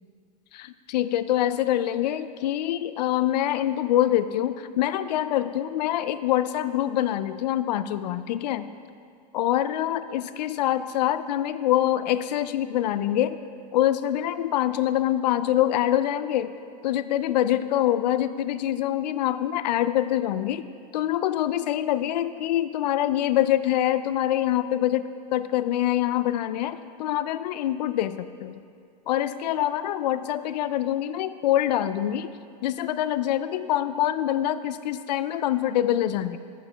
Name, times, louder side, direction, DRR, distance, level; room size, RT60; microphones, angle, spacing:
voice 1, 0.5-8.7 9.3-13.4 13.7-16.5 16.8-20.6 20.9-28.5 29.1-32.3 32.6-36.4, left 12 dB, 85° left, 13 dB, 0.4 m, -25 dB
9.5 x 5.2 x 4.5 m, 2.3 s
supercardioid pair, 170°, 21 cm